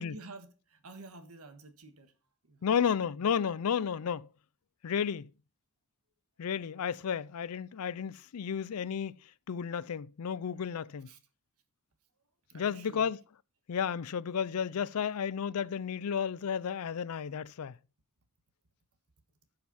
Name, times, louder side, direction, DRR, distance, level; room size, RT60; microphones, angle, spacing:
voice 1, 0.0-2.1 2.4-3.0 7.7-7.8 11.0-11.2 12.5-13.1, right 3 dB, 75° right, 1.6 m, -51 dB
voice 2, 2.6-4.3 4.8-5.3 6.4-9.1 9.5-11.1 12.5-13.2 13.7-17.8, left 7 dB, 75° left, 0.4 m, -32 dB
11.0 x 6.7 x 4.1 m
head